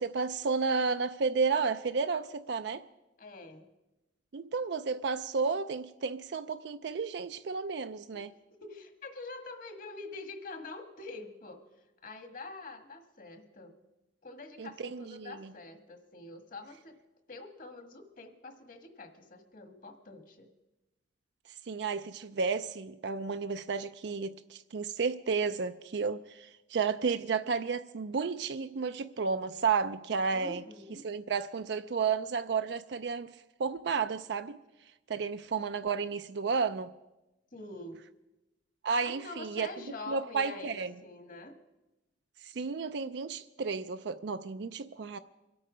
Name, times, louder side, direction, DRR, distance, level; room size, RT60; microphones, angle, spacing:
voice 1, 0.0-2.8 4.3-8.3 14.6-15.5 21.7-30.6 31.0-34.6 35.1-36.9 38.8-39.7 40.1-40.9 42.4-45.2, right 5 dB, 65° right, 10 dB, 0.4 m, -32 dB
voice 2, 3.2-3.7 8.1-8.2 8.6-11.6 12.0-13.8 14.2-16.9 17.3-20.5 30.3-31.1 37.5-38.0 39.0-41.6, left 2 dB, 45° left, 7 dB, 1.5 m, -45 dB
24.5 x 8.7 x 5.0 m, 1.0 s
head